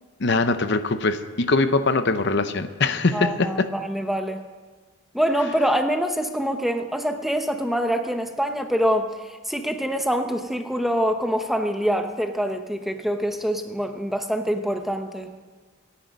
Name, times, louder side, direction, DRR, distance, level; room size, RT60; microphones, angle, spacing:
voice 1, 0.2-3.7, left 3 dB, 55° left, 10 dB, 0.8 m, -22 dB
voice 2, 3.1-4.4 5.1-15.3, equal, ahead, 5 dB, 0.8 m, -25 dB
27.0 x 10.0 x 5.3 m, 1.4 s
head